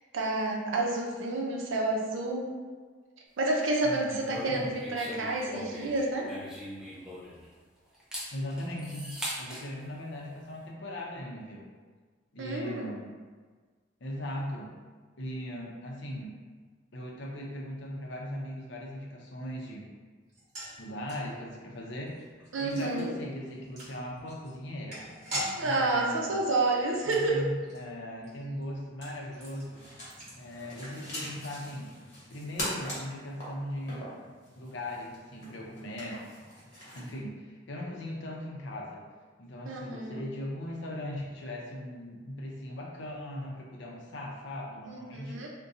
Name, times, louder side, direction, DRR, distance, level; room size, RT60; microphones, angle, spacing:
voice 1, 0.1-2.5 3.4-6.3 12.4-12.9 22.5-23.1 25.6-27.5 39.6-40.2 44.9-45.5, right 2 dB, 75° right, -1 dB, 0.5 m, -29 dB
voice 2, 3.8-4.7 8.3-11.6 12.3-13.1 14.0-14.7 15.2-16.3 16.9-19.9 20.8-25.0 25.6-26.4 27.0-29.8 30.4-31.9 32.3-34.1 34.6-36.2 36.9-39.0 39.4-45.4, left 1 dB, 65° left, -2 dB, 0.6 m, -39 dB
sound 1, 4.3-7.5 7.9-9.6, equal, 5° right, 0.5 m, -40 dB
sound 2, 20.3-31.5 31.8-31.9 32.2-32.3, equal, 40° right, 1.1 m, -44 dB
sound 3, 29.6-37.2, left 1 dB, 40° left, 1.1 m, -42 dB
2.7 x 2.2 x 3.6 m, 1.4 s
head